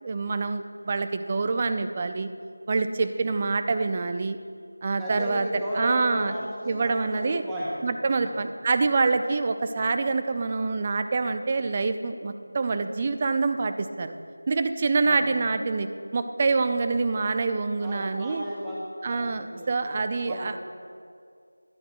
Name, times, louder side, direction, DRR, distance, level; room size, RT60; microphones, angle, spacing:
voice 1, 0.0-2.3 2.7-4.4 4.8-5.5 5.7-6.4 6.7-7.4 7.8-14.1 14.5-18.4 19.0-20.5, right 4 dB, 25° right, 9 dB, 0.3 m, -26 dB
voice 2, 5.0-7.9 8.2-8.4 15.0-15.3 17.7-20.0 20.2-20.8, equal, 5° right, -9 dB, 0.9 m, -34 dB
11.0 x 6.5 x 4.4 m, 2.3 s
figure-of-eight pair, 175°, 0 cm